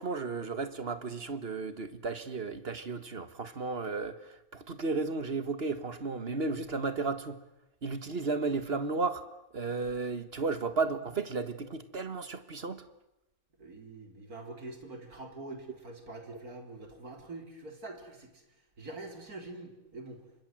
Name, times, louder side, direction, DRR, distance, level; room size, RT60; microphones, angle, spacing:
voice 1, 0.0-7.4 7.8-9.3 9.5-12.8, right 4 dB, 45° right, 1.8 m, -34 dB
voice 2, 13.6-18.4 18.8-20.2, right 2 dB, 90° right, 4.6 m, -45 dB
29.5 x 25.5 x 7.8 m
omnidirectional pair, 1.5 m